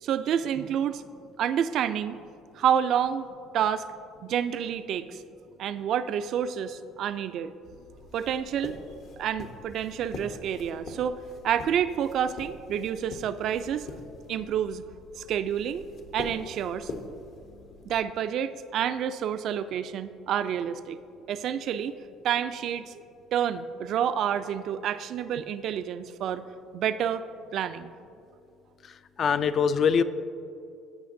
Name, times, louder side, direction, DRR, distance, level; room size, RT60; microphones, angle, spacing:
voice 1, 0.0-1.0 1.4-2.2 2.6-3.3 3.5-3.9 4.2-5.2 5.6-7.5 8.1-8.8 9.2-13.9 14.3-14.8 15.1-15.8 16.1-16.9 17.8-21.0 21.3-21.9 22.2-23.0 23.3-26.4 26.7-27.2 27.5-27.9, right 9 dB, 60° right, 12 dB, 0.3 m, -28 dB
sound 1, 7.6-18.0, left 3 dB, 60° left, 0.8 m, -44 dB
voice 2, 29.2-30.0, left 6 dB, 45° left, 13 dB, 0.3 m, -22 dB
15.0 x 5.7 x 2.6 m, 2.6 s
cardioid pair, 120°, 0 cm